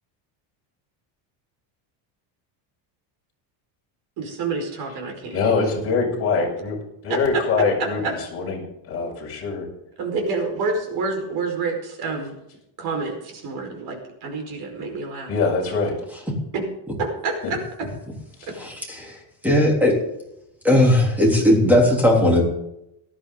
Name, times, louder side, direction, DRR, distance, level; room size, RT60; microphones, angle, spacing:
voice 1, 4.2-5.6 7.1-7.4 7.8-8.1 10.0-12.3 12.8-15.3 16.5-16.6 17.0-17.6, right 4 dB, 50° right, 3 dB, 5.0 m, -28 dB
voice 2, 5.3-6.8 7.0-9.6 15.3-15.9 18.4-18.5, left 4 dB, 30° left, -3 dB, 6.5 m, -23 dB
voice 3, 18.6-20.0 20.6-22.4, left 1 dB, 5° right, -1 dB, 3.5 m, -18 dB
18.5 x 13.0 x 4.0 m, 0.82 s
cardioid pair, 165°, 48 cm